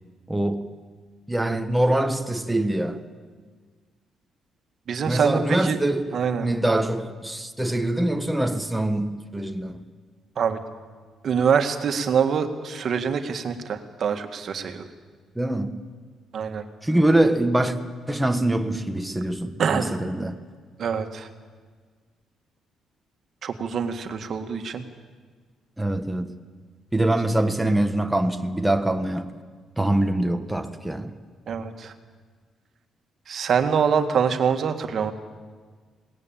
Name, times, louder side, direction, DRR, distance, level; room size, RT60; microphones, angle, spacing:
voice 1, 0.3-0.7 1.3-3.0 5.1-6.1 6.4-9.8 15.3-15.8 16.8-17.8 18.1-20.4 25.8-26.3 26.9-29.3 29.8-31.1, right 1 dB, 5° right, 1.3 m, -24 dB
voice 2, 4.9-5.8 6.1-6.5 10.4-10.6 11.2-14.9 16.3-16.6 19.6-19.9 20.8-21.3 23.4-24.8 31.5-31.9 33.3-35.1, right 6 dB, 55° right, 1.8 m, -24 dB
20.5 x 18.0 x 9.0 m
cardioid pair, 90°, 0 cm